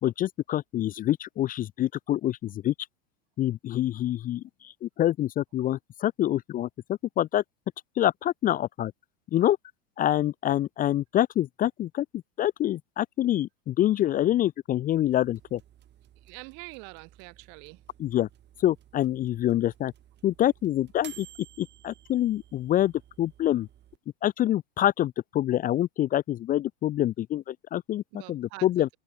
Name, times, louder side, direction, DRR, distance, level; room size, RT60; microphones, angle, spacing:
voice 1, 0.0-2.7 3.4-7.4 8.0-8.9 9.3-9.6 10.0-12.1 12.4-15.6 18.0-18.3 18.6-19.9 20.2-21.3 21.6-22.9 23.2-23.7 24.2-28.0 28.3-28.9, left 12 dB, 25° left, 0.7 m, -26 dB
sound 1, 14.9-24.0, right 12 dB, 35° right, 7.7 m, -54 dB
voice 2, 16.2-17.8 28.1-28.9, right 40 dB or more, 55° right, 6.6 m, -45 dB
open air
supercardioid pair, 130°, 33 cm